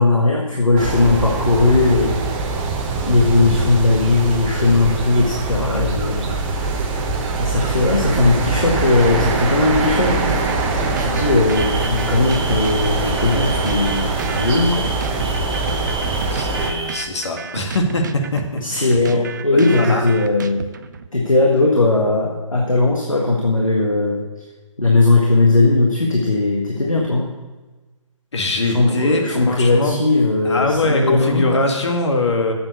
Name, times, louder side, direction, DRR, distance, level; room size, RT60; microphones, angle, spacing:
voice 1, 0.0-2.2 3.0-6.3 6.6-6.7 7.4-10.3 11.0-14.9 18.6-20.6 21.1-24.2 24.8-27.3 28.6-31.5, left 2 dB, 85° left, -1 dB, 1.6 m, -18 dB
sound 1, 0.8-16.7, right 3 dB, 20° right, 1.0 m, -23 dB
sound 2, 10.3-21.1, right 6 dB, 35° right, 0.4 m, -33 dB
sound 3, 11.5-17.0, right 2 dB, 55° right, 1.3 m, -32 dB
voice 2, 16.3-20.0 28.3-30.0 30.4-32.5, left 2 dB, 60° left, 2 dB, 1.8 m, -22 dB
9.0 x 7.8 x 6.6 m, 1.2 s
figure-of-eight pair, 140°, 17 cm